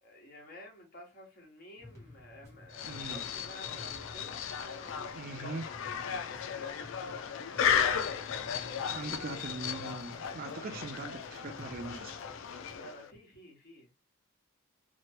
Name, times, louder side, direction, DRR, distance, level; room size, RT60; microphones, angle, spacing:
voice 1, 0.0-5.5 12.7-13.9, left 1 dB, 45° left, 1.4 m, -52 dB
sound 1, 1.8-12.8, left 1 dB, 15° left, 0.8 m, -53 dB
sound 2, 2.7-13.1, left 7 dB, 60° left, 0.3 m, -35 dB
voice 2, 2.8-3.2 5.2-5.6 8.9-12.2, right 3 dB, 40° right, 0.4 m, -41 dB
3.0 x 2.1 x 2.8 m
head